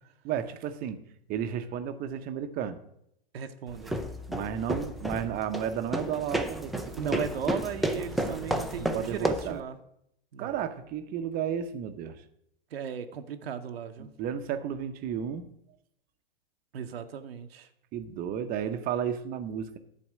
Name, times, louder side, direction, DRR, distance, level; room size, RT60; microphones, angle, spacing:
voice 1, 0.2-1.0 1.3-2.8 4.3-7.2 8.8-9.6 10.4-12.2 14.0-15.5 17.9-19.8, right 9 dB, 30° right, 9 dB, 0.7 m, -33 dB
voice 2, 3.3-3.9 6.9-9.8 10.3-10.5 12.7-14.1 16.7-17.7, right 8 dB, 80° right, 6 dB, 0.8 m, -36 dB
sound 1, 3.7-9.6, equal, ahead, 0.4 m, -32 dB
11.0 x 4.2 x 7.4 m, 0.75 s
hypercardioid pair, 120°, 30 cm